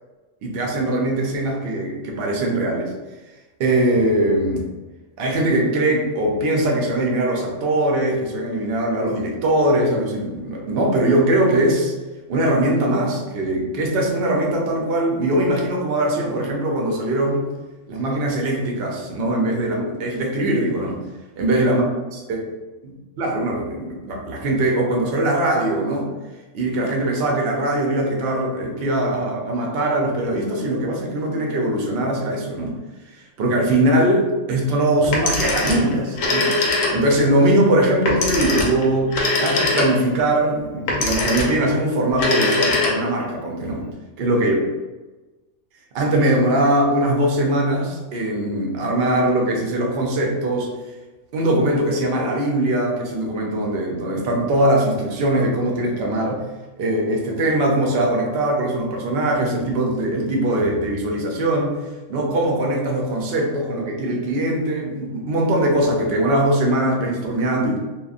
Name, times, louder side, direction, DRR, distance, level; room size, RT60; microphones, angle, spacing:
voice 1, 0.4-2.9 3.6-4.7 5.2-11.9 12.3-17.4 17.9-21.0 21.4-21.8 22.3-22.4 23.2-26.1 26.5-32.7 33.1-39.1 39.4-43.8 44.2-44.6 45.9-50.7 51.3-56.4 56.8-61.8 62.1-67.8, right 1 dB, 60° right, -1 dB, 0.7 m, -21 dB
Telephone, 35.0-37.2 38.1-40.2 40.9-41.7 42.1-43.3, left 2 dB, 70° left, 0.9 m, -22 dB
2.9 x 2.3 x 2.4 m, 1.2 s
omnidirectional pair, 1.4 m